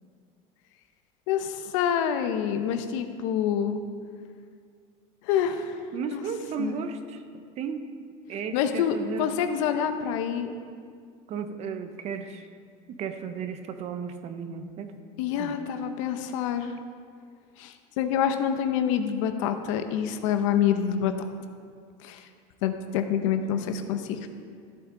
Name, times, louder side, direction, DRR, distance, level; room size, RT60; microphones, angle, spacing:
voice 1, 1.3-3.8 5.2-5.8 6.1-6.2 6.6-6.8 8.5-10.5 15.2-16.8 17.6-21.1 22.0-22.3 22.6-24.3, left 8 dB, 90° left, 8 dB, 0.9 m, -27 dB
voice 2, 5.9-7.2 7.6-7.8 8.3-9.3 11.3-12.4 12.9-14.9 15.4-15.5, right 6 dB, 45° right, 8 dB, 0.8 m, -34 dB
14.0 x 8.4 x 3.9 m, 2.1 s
cardioid pair, 140°, 16 cm